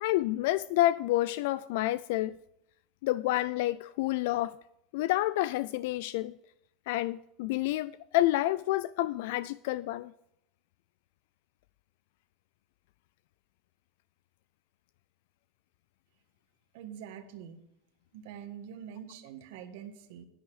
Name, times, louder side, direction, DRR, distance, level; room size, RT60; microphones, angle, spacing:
voice 1, 0.0-2.4 3.0-4.6 4.9-6.4 6.9-10.1, left 16 dB, 70° left, 0.3 m, -29 dB
voice 2, 16.7-17.6 18.1-20.3, right 8 dB, 70° right, 1.5 m, -45 dB
10.5 x 9.9 x 4.8 m
supercardioid pair, 160°, 0 cm